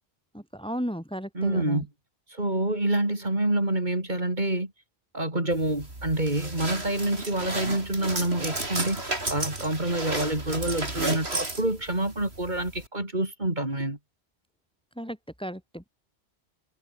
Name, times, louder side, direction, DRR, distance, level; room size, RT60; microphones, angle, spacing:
voice 1, 0.3-1.8 15.0-15.9, equal, 5° left, 3.6 m, -35 dB
voice 2, 1.3-1.9 2.3-4.7 5.1-9.0 9.3-14.0, right 1 dB, 45° right, 4.6 m, -27 dB
sound 1, 5.5-12.9, right 2 dB, 85° right, 5.3 m, -33 dB
omnidirectional pair, 1.1 m